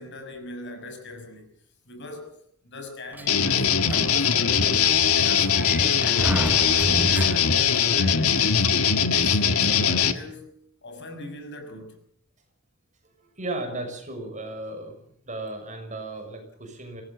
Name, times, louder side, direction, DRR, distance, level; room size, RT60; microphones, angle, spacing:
voice 1, 0.0-1.5 1.8-3.7 4.1-4.8 5.1-6.4 6.8-8.7 9.1-10.5 10.8-12.0, left 2 dB, 55° left, 5.9 m, -40 dB
Sliding door, 3.1-7.8, right 1 dB, 10° right, 0.9 m, -33 dB
sound 1, 3.3-10.1, left 7 dB, 70° left, 1.6 m, -21 dB
voice 2, 13.2-14.9 15.3-17.0, right 2 dB, 35° right, 6.3 m, -35 dB
24.5 x 18.0 x 7.1 m
head